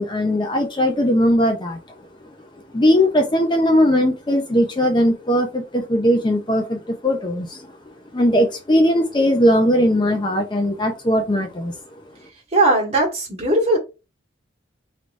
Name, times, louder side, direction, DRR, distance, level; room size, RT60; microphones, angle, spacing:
voice 1, 0.0-1.8 2.7-7.7 8.1-11.8, equal, 25° left, 0.5 m, -19 dB
voice 2, 12.5-13.8, right 2 dB, 35° right, 1.6 m, -18 dB
4.9 x 3.2 x 2.5 m
head